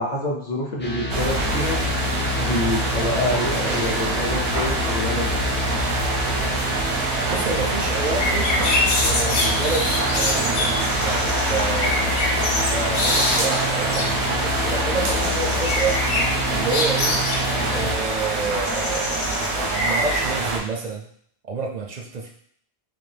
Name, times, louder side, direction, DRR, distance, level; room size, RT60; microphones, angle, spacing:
voice 1, 0.0-1.8 2.4-5.4, left 1 dB, 45° left, -2 dB, 0.8 m, -26 dB
sound 1, 0.8-17.9, left 2 dB, 15° left, 0.4 m, -28 dB
sound 2, 1.1-20.6, right 2 dB, 90° right, 1.1 m, -25 dB
voice 2, 7.2-8.7 9.0-12.4 12.7-16.0 16.5-17.2 17.7-19.2 19.7-21.1 21.5-22.3, right 4 dB, 55° right, 2 dB, 0.5 m, -29 dB
sound 3, 8.0-14.1 15.2-17.4 18.6-20.2, left 2 dB, 80° left, 1.0 m, -25 dB
3.9 x 2.7 x 3.3 m, 0.64 s
omnidirectional pair, 1.1 m